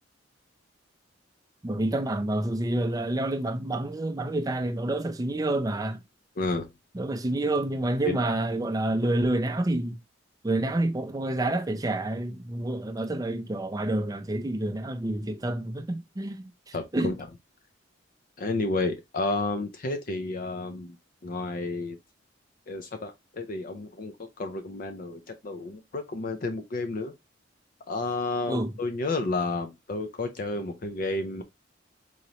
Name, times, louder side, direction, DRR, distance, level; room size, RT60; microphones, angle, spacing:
voice 1, 1.6-6.0 6.9-10.0 10.4-17.1 28.5-28.7, right 1 dB, 20° right, 0.5 m, -28 dB
voice 2, 6.4-6.7 8.0-8.2 16.7-17.2 18.4-21.0 21.2-22.0 22.7-27.1 27.9-31.4, left 3 dB, 45° left, 0.5 m, -31 dB
3.9 x 2.9 x 3.0 m
head